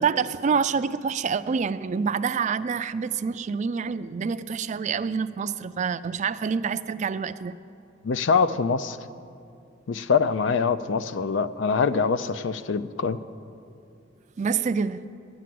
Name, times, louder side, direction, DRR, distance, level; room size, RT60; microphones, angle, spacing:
voice 1, 0.0-7.6 14.4-15.0, right 6 dB, 40° right, 13 dB, 0.3 m, -27 dB
voice 2, 8.0-9.0 9.9-13.2, left 5 dB, 70° left, 14 dB, 0.4 m, -24 dB
11.0 x 10.0 x 7.6 m, 2.5 s
head